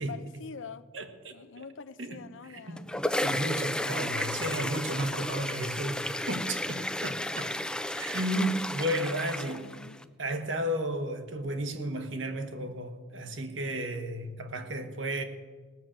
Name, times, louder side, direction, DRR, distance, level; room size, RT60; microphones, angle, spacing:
voice 1, 0.1-0.9 1.3-2.9 4.3-4.8 5.5-5.6 6.6-7.2 8.4-8.5 9.4-10.0, left 5 dB, 75° left, 12 dB, 0.6 m, -45 dB
voice 2, 0.9-1.7 2.0-2.2 2.5-2.8 3.2-7.5 7.9-9.7 10.2-15.2, right 1 dB, 70° right, 6 dB, 1.5 m, -33 dB
sound 1, 2.6-10.0, left 1 dB, 5° left, 0.4 m, -33 dB
18.5 x 6.6 x 8.8 m, 1.4 s
head